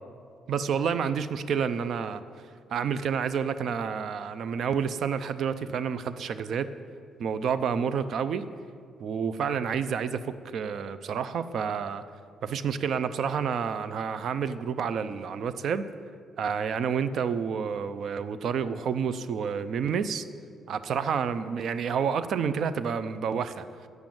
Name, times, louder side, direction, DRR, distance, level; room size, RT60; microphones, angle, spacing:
voice 1, 0.5-2.2 2.7-6.7 7.2-8.4 9.0-12.0 12.4-15.9 16.4-20.2 20.7-23.7, right 7 dB, 65° right, 13 dB, 0.5 m, -29 dB
9.5 x 7.7 x 8.9 m, 2.2 s
cardioid pair, 90°, 0 cm